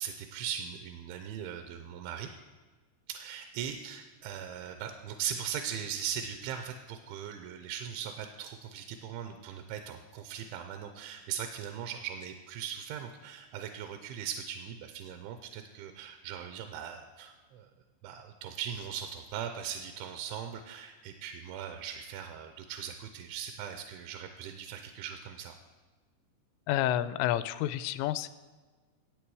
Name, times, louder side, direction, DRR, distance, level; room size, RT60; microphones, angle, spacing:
voice 1, 0.0-2.3 3.1-17.7 18.0-25.5, right 8 dB, 80° right, 6 dB, 3.0 m, -39 dB
voice 2, 26.7-28.3, left 13 dB, 85° left, 14 dB, 3.1 m, -29 dB
16.0 x 8.3 x 4.8 m, 1.3 s
omnidirectional pair, 5.6 m